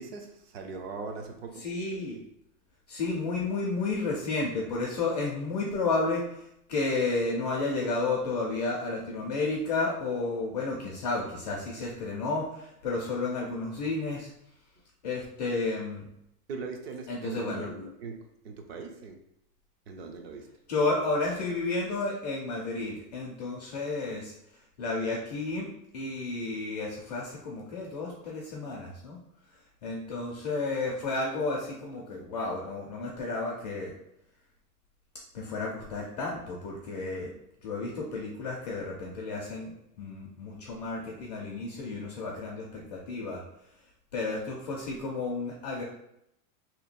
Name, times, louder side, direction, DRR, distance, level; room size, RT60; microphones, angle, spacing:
voice 1, 0.0-1.7 16.5-19.2 19.9-20.5, right 4 dB, 45° right, 0.5 m, -40 dB
voice 2, 1.5-2.2 2.9-14.3 15.0-16.1 17.1-17.7 20.7-29.2 29.5-33.9 35.3-37.3 37.6-43.4 43.7-43.8 44.1-45.8, left 3 dB, 30° left, 0.4 m, -32 dB
3.0 x 2.9 x 4.2 m
supercardioid pair, 170°, 44 cm